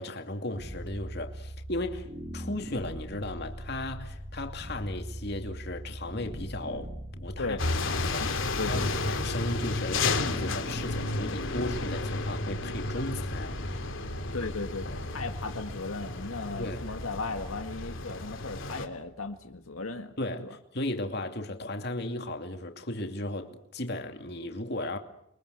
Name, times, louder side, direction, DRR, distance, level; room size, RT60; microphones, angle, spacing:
voice 1, 0.0-2.1 2.3-13.6 16.6-16.9 20.2-25.0, left 1 dB, 50° left, 2.6 m, -36 dB
sound 1, 0.5-19.6, equal, 25° right, 2.2 m, -42 dB
sound 2, 7.6-18.9, left 3 dB, 70° left, 2.9 m, -33 dB
voice 2, 8.6-9.0 14.3-20.1 20.4-20.6, left 3 dB, 90° left, 1.9 m, -36 dB
30.0 x 23.5 x 8.1 m
head